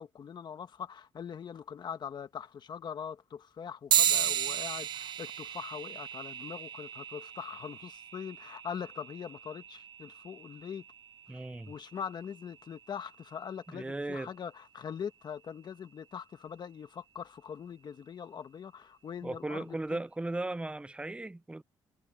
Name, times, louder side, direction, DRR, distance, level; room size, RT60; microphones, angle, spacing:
voice 1, 0.0-10.8 11.7-20.0, left 7 dB, 55° left, 1.5 m, -42 dB
sound 1, 3.9-13.7, right 10 dB, 55° right, 0.4 m, -35 dB
voice 2, 11.3-11.7 13.7-14.3 19.2-21.6, right 2 dB, 10° right, 0.7 m, -37 dB
cardioid pair, 80°, 9 cm